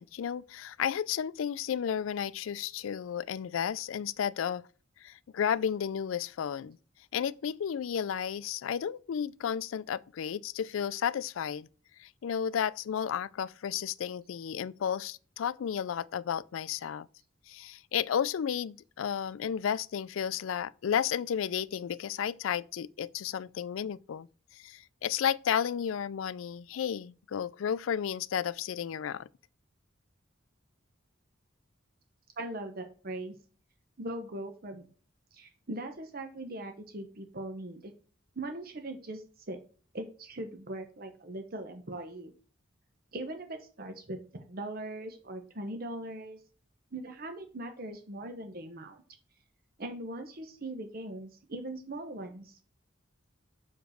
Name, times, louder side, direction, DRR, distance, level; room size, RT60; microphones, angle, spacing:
voice 1, 0.0-4.6 5.0-6.8 7.1-11.7 12.0-17.1 17.5-24.3 24.5-29.3, left 8 dB, 80° left, 0.4 m, -33 dB
voice 2, 32.4-33.4 34.0-34.9 35.3-37.9 38.4-39.6 39.9-42.3 43.1-46.4 46.9-49.0 49.8-52.6, right 1 dB, 50° right, 0.9 m, -40 dB
5.8 x 5.1 x 6.4 m
head